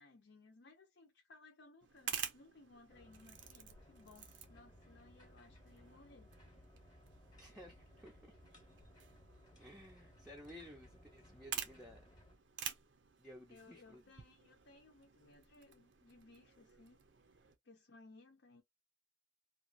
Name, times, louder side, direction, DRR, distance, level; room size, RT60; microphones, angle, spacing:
voice 1, 0.0-6.3 13.5-17.0 17.6-18.6, left 3 dB, 70° left, 0.6 m, -62 dB
sound 1, 1.8-17.6, right 8 dB, 75° right, 0.6 m, -50 dB
sound 2, 2.9-12.4, left 1 dB, 25° left, 0.9 m, -62 dB
voice 2, 7.4-8.3 9.6-12.0 13.2-14.0, equal, 5° right, 0.5 m, -55 dB
2.9 x 2.3 x 2.4 m
head